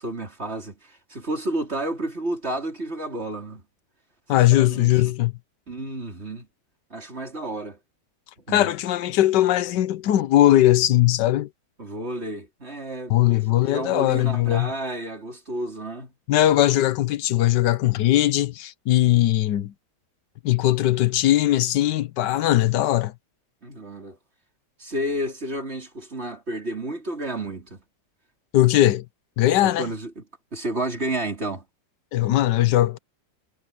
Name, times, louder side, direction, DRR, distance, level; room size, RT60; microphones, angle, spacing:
voice 1, 0.0-3.6 4.3-5.1 5.7-6.5 6.9-7.8 8.5-8.7 11.8-16.1 23.6-24.2 24.8-27.8 29.6-30.2 30.5-31.6, right 1 dB, 35° right, 4.5 m, -31 dB
voice 2, 4.3-5.3 8.5-11.5 13.1-14.7 16.3-19.7 20.4-23.1 28.5-29.0 29.4-29.9 32.1-33.0, left 14 dB, 85° left, 1.4 m, -20 dB
omnidirectional pair, 1.8 m